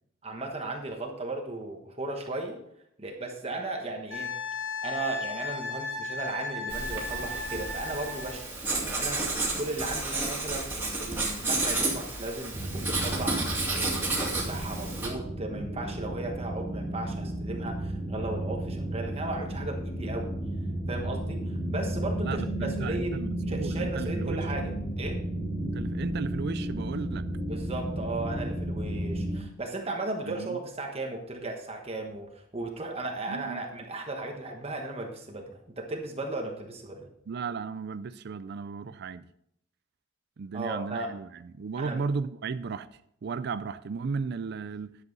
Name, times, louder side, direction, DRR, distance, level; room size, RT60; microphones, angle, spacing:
voice 1, 0.2-2.6 3.0-4.3 4.8-20.3 20.9-23.2 23.5-25.2 27.5-37.1 40.5-41.1 41.8-42.0, right 2 dB, 30° right, 1.2 m, -36 dB
Wind instrument woodwind instrument, 4.1-8.3 11.0-11.2, left 3 dB, 65° left, 3.9 m, -35 dB
Writing, 6.7-15.1, right 2 dB, 10° right, 2.3 m, -31 dB
sound 1, 12.5-29.4, right 1 dB, 15° left, 3.7 m, -33 dB
voice 2, 22.2-24.4 25.6-27.2 30.2-30.6 33.3-33.6 37.3-39.2 40.4-42.9 43.2-45.0, right 5 dB, 55° right, 0.4 m, -35 dB
10.5 x 8.0 x 4.0 m
head